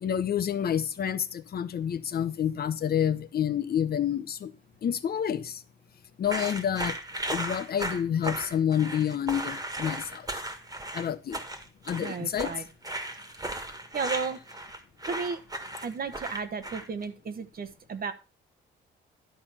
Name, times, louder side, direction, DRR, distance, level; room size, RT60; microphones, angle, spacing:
voice 1, 0.0-4.5 4.8-5.6 6.2-7.0 7.3-10.3 10.9-11.4 11.9-12.5, left 9 dB, 50° left, 0.8 m, -28 dB
sound 1, 6.2-17.0, right 1 dB, 20° right, 1.7 m, -36 dB
voice 2, 12.0-12.7 13.9-14.4 15.1-15.4 15.8-18.1, right 5 dB, 50° right, 1.2 m, -33 dB
11.5 x 4.4 x 5.7 m
cardioid pair, 90°, 20 cm